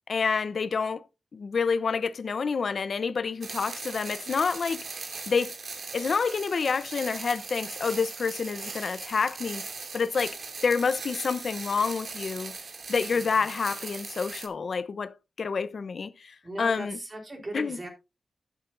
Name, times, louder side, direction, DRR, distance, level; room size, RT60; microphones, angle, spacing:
voice 1, 0.1-1.0 1.3-5.5 5.9-9.6 9.9-10.4 10.6-12.5 12.9-17.0 17.5-17.8, left 5 dB, 60° left, 0.8 m, -28 dB
sound 1, 3.4-14.5, right 4 dB, 55° right, 2.4 m, -39 dB
voice 2, 13.1-13.5 16.4-17.9, right 1 dB, 25° right, 4.0 m, -38 dB
12.0 x 11.0 x 2.6 m
wide cardioid pair, 130°, 0 cm